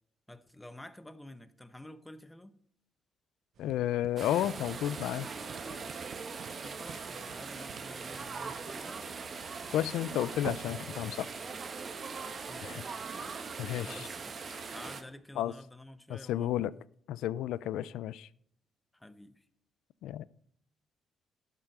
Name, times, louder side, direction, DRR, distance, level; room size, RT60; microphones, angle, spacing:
voice 1, 0.3-2.6 6.6-9.2 12.5-13.0 13.8-14.4 14.7-16.7 18.9-19.5, left 1 dB, 10° left, 0.9 m, -50 dB
sound 1, 3.5-10.7, right 9 dB, 65° right, 0.5 m, -49 dB
voice 2, 3.6-5.3 9.7-11.3 12.6-12.8 13.6-14.0 15.4-15.5 16.1-16.7 17.1-18.3 20.0-20.2, left 12 dB, 85° left, 0.4 m, -32 dB
sound 2, 4.2-15.0, right 5 dB, 45° right, 1.5 m, -41 dB
12.0 x 7.5 x 5.5 m
cardioid pair, 90°, 0 cm